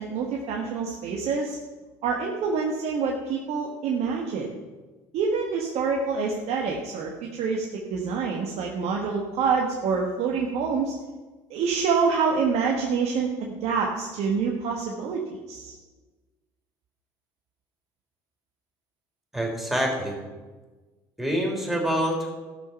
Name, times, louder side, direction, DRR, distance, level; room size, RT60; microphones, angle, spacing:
voice 1, 0.0-1.6 2.0-4.5 5.1-11.0 11.5-15.2 15.5-15.7, right 5 dB, 70° right, 0 dB, 1.4 m, -26 dB
voice 2, 19.3-20.2 21.2-22.3, equal, ahead, 0 dB, 3.8 m, -26 dB
14.5 x 6.0 x 5.8 m, 1.3 s
supercardioid pair, 65°, 11 cm